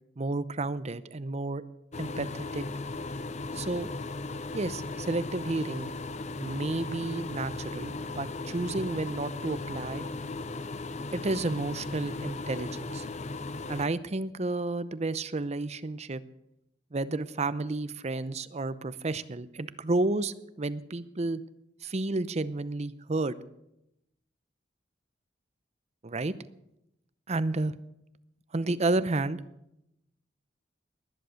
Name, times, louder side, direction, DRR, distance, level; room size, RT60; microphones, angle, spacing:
voice 1, 0.2-1.6 2.0-2.7 3.5-3.9 4.5-5.9 6.4-10.1 11.1-13.0 13.7-16.2 16.9-21.4 21.8-23.4 26.0-26.3 27.3-27.8 28.5-29.4, right 2 dB, 40° right, 15 dB, 0.7 m, -31 dB
sound 1, 1.9-13.9, left 3 dB, 40° left, 0.8 m, -37 dB
19.5 x 10.5 x 6.4 m, 0.84 s
head